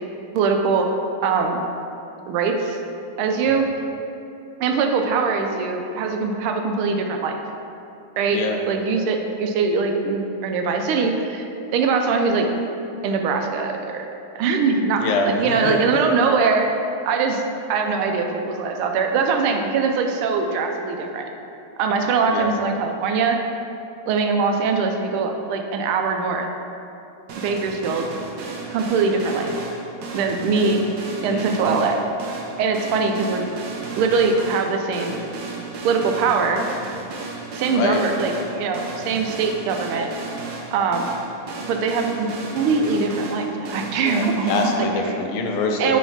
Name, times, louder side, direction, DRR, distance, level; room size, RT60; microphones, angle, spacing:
voice 1, 0.3-0.9 1.2-1.6 2.3-2.8 3.2-3.7 4.6-7.4 8.2-8.4 8.7-11.5 11.7-12.5 13.0-14.1 14.3-16.6 17.0-17.4 17.7-21.3 21.8-23.4 24.1-26.5 27.4-28.1 28.7-29.5 30.1-30.8 31.2-32.0 32.6-33.4 34.0-35.2 35.8-36.6 37.5-40.1 40.7-41.1 41.7-42.3 42.5-44.7 45.8-46.0, right 4 dB, 85° right, 4 dB, 1.5 m, -22 dB
voice 2, 15.0-15.8 22.3-22.5 31.3-31.9 37.7-38.0 44.0-46.0, left 3 dB, 80° left, 2 dB, 1.5 m, -25 dB
sound 1, 27.3-44.7, right 4 dB, 65° right, 1.2 m, -34 dB
6.6 x 3.2 x 5.6 m, 2.8 s
omnidirectional pair, 2.3 m